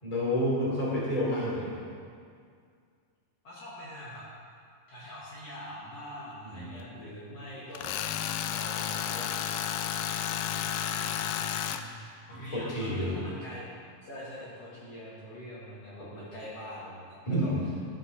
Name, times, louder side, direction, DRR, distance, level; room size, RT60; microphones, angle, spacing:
voice 1, 0.0-1.8 6.4-6.7 12.3-13.2 16.2-16.3 17.3-17.6, equal, 10° left, -6 dB, 2.5 m, -30 dB
voice 2, 3.4-4.3 4.9-8.1 8.5-9.7 9.9-12.0 12.3-13.7 14.0-17.5, equal, 50° left, -8 dB, 2.6 m, -44 dB
Tools, 7.8-11.8, left 9 dB, 85° left, 1.7 m, -32 dB
13.5 x 6.1 x 6.4 m, 2.2 s
omnidirectional pair, 4.1 m